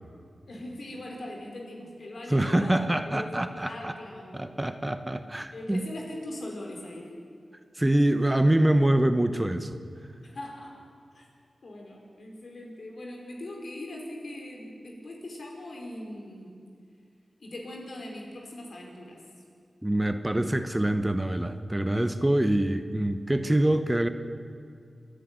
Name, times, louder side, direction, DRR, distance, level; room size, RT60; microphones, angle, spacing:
voice 1, 0.5-4.4 5.5-7.2 10.2-10.8 11.1-11.3 11.6-16.6 17.4-19.2, left 1 dB, 65° left, 0 dB, 5.0 m, -41 dB
voice 2, 2.3-3.9 4.3-5.8 7.8-9.8 19.8-24.1, right 1 dB, 15° right, 9 dB, 1.0 m, -25 dB
27.5 x 10.5 x 9.6 m, 2.3 s
wide cardioid pair, 75°, 0 cm